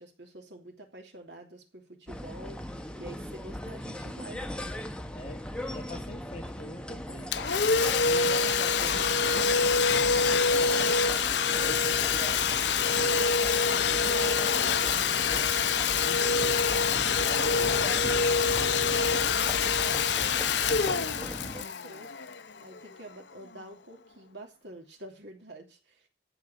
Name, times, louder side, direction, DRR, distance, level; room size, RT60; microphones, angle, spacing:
voice 1, 0.0-4.5 8.2-8.5 13.9-15.6 17.3-17.8 18.6-22.1 22.6-26.1, right 1 dB, 75° right, 3.0 m, -47 dB
sound 1, 2.1-21.6, left 1 dB, 5° left, 1.2 m, -39 dB
voice 2, 5.1-7.3 8.0-11.0 11.5-13.3 16.0-16.6 17.2-18.1, left 1 dB, 40° left, 3.0 m, -43 dB
Domestic sounds home sounds, 7.3-22.8, left 5 dB, 75° left, 0.8 m, -25 dB
14.0 x 4.9 x 7.8 m
head